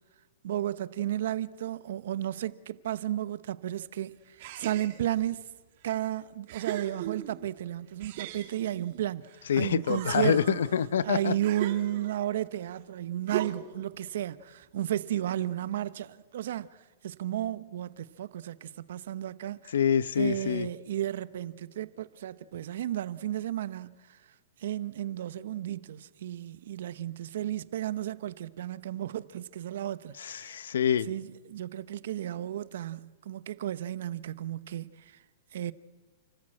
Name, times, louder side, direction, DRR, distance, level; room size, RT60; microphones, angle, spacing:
voice 1, 0.4-5.4 5.8-10.6 11.0-16.7 17.0-19.7 20.2-23.9 24.6-30.6 31.1-35.2 35.5-35.7, right 12 dB, 70° right, 0.9 m, -33 dB
sound 1, 4.4-5.3 5.9-6.0 6.5-7.5 8.0-9.4 9.8-12.3 13.3-13.8, right 13 dB, 55° right, 2.2 m, -39 dB
voice 2, 9.5-11.3 19.7-20.7 30.2-31.1, left 8 dB, 85° left, 0.7 m, -26 dB
29.5 x 14.0 x 7.6 m
hypercardioid pair, 145°, 0 cm